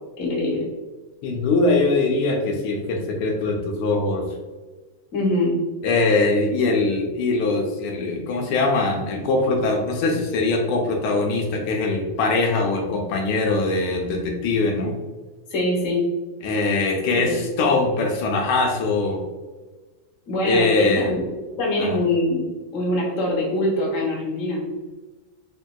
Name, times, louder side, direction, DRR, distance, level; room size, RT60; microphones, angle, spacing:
voice 1, 0.2-0.7 5.1-5.6 15.5-16.0 17.0-17.4 20.3-22.5 22.7-24.6, left 1 dB, 50° left, -4 dB, 1.1 m, -23 dB
voice 2, 1.2-4.2 5.8-14.9 16.4-19.2 20.4-21.1 21.8-22.0, left 3 dB, 85° left, 1 dB, 1.5 m, -22 dB
3.8 x 2.6 x 2.2 m, 1.2 s
omnidirectional pair, 2.3 m